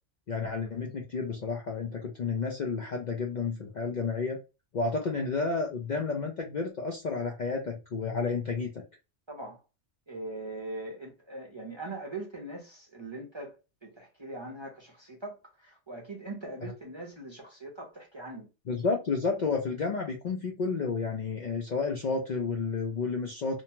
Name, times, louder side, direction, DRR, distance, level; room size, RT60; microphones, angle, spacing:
voice 1, 0.3-4.4 4.7-8.8 18.7-23.6, left 4 dB, 55° left, 0.5 m, -31 dB
voice 2, 9.3-9.6 10.1-13.6 13.8-18.5, right 2 dB, 30° right, 0.6 m, -41 dB
2.7 x 2.2 x 2.7 m
omnidirectional pair, 1.2 m